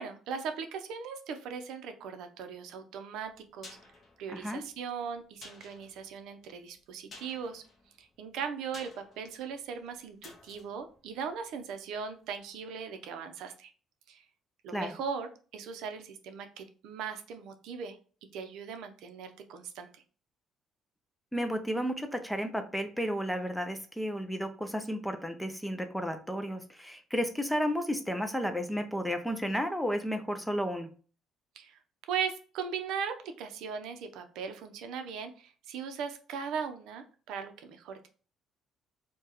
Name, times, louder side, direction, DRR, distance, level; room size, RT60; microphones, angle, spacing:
voice 1, 0.0-3.8 4.2-7.6 8.0-8.9 9.2-13.7 14.1-14.2 14.6-18.0 18.3-20.0 31.6-31.8 32.1-38.1, right 6 dB, 70° right, 7 dB, 0.6 m, -39 dB
sound 1, 3.2-12.1 12.4-12.5, left 2 dB, 30° left, 0.8 m, -55 dB
voice 2, 4.3-4.6 14.7-14.9 21.3-30.9, equal, ahead, 7 dB, 0.4 m, -32 dB
4.7 x 2.2 x 2.9 m, 0.39 s
cardioid pair, 170°, 0 cm